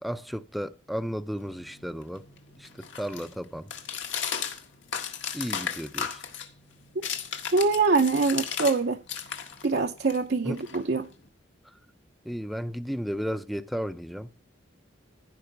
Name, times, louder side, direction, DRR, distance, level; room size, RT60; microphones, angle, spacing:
voice 1, 0.0-2.2 2.6-2.7 3.0-3.7 5.3-6.2 10.4-10.6 12.3-14.3, equal, ahead, 0.5 m, -33 dB
sound 1, 1.4-8.8 9.1-11.3, left 7 dB, 80° left, 1.7 m, -36 dB
voice 2, 7.5-9.0 9.6-11.1, right 4 dB, 55° right, 0.6 m, -24 dB
15.5 x 5.4 x 5.8 m
head